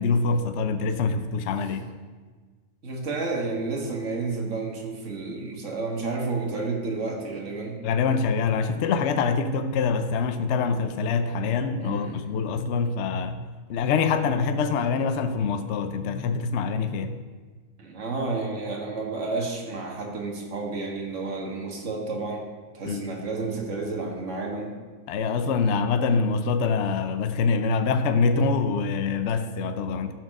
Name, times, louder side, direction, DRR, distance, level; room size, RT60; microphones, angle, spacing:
voice 1, 0.0-1.9 7.8-17.2 22.8-23.0 25.1-30.1, left 5 dB, 65° left, 0.8 m, -25 dB
voice 2, 2.8-7.8 11.8-12.2 17.8-22.5 22.7-24.8, right 3 dB, 60° right, 1.8 m, -31 dB
12.0 x 4.7 x 6.2 m
omnidirectional pair, 1.5 m